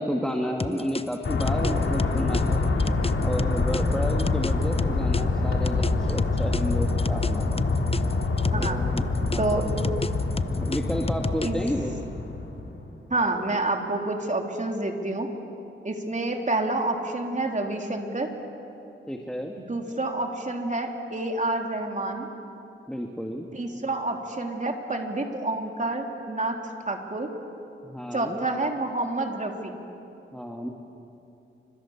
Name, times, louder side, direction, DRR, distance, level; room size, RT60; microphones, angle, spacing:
voice 1, 0.0-2.6 3.2-7.7 8.5-10.0 10.5-12.0 19.1-19.5 22.9-23.5 27.8-28.4 30.3-30.7, equal, 5° left, 1 dB, 2.1 m, -31 dB
sound 1, 0.6-5.2 5.7-8.7 9.0-11.7, left 3 dB, 30° left, 0.8 m, -31 dB
sound 2, 1.2-12.9, left 3 dB, 85° left, 3.1 m, -26 dB
voice 2, 8.5-8.8 9.4-9.7 11.4-11.6 13.1-15.3 15.8-18.3 19.6-22.3 23.5-26.6 26.9-27.3 28.1-29.7, right 2 dB, 35° right, 2 dB, 3.4 m, -28 dB
29.0 x 26.5 x 7.3 m, 2.9 s
cardioid pair, 65°, 21 cm